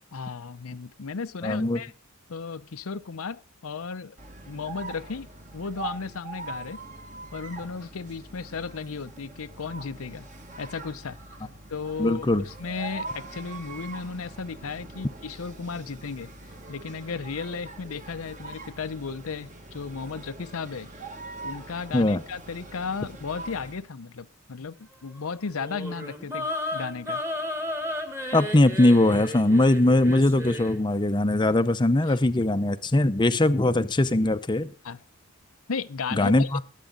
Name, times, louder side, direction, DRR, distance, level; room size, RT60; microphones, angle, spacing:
voice 1, 0.1-1.9 2.3-4.2 4.4-5.3 5.5-6.8 7.3-10.3 10.6-11.2 11.7-16.3 16.7-20.9 21.4-27.2 32.1-32.2 34.8-35.0 35.7-36.5, left 5 dB, 80° left, 0.7 m, -35 dB
voice 2, 1.4-1.8 12.0-12.4 21.9-22.2 28.3-34.7 36.1-36.6, left 1 dB, 20° left, 0.7 m, -21 dB
sound 1, 4.2-23.9, right 3 dB, 35° right, 1.8 m, -42 dB
sound 2, 25.5-30.8, left 1 dB, 15° right, 1.6 m, -33 dB
20.5 x 8.4 x 3.9 m
head